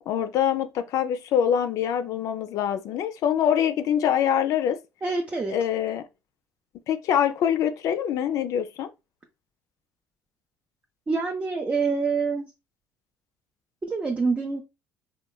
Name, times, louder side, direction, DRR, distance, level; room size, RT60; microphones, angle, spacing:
voice 1, 0.1-4.8 5.5-6.0 6.9-8.9, left 9 dB, 65° left, 0.3 m, -24 dB
voice 2, 5.0-5.5 11.1-12.4 13.8-14.6, right 4 dB, 25° right, 0.5 m, -26 dB
2.9 x 2.1 x 2.3 m
hypercardioid pair, 65°, 6 cm